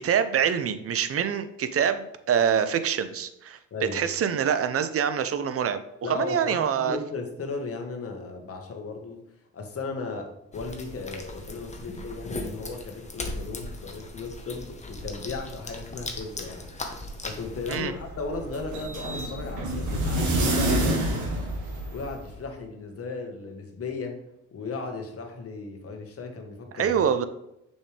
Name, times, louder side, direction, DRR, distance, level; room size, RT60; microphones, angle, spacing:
voice 1, 0.0-3.6 3.9-5.8 6.1-7.0 17.7-17.9 26.7-27.3, right 8 dB, 50° right, 11 dB, 0.7 m, -25 dB
voice 2, 6.0-9.2 9.5-16.7 17.2-21.5 21.9-24.2 24.5-26.9, left 4 dB, 50° left, 4 dB, 1.4 m, -36 dB
sound 1, 10.5-17.7, left 2 dB, 25° left, 1.1 m, -38 dB
sound 2, 17.5-22.3, right 1 dB, 75° right, 1.5 m, -28 dB
6.7 x 5.4 x 3.4 m, 0.85 s
cardioid pair, 90°, 30 cm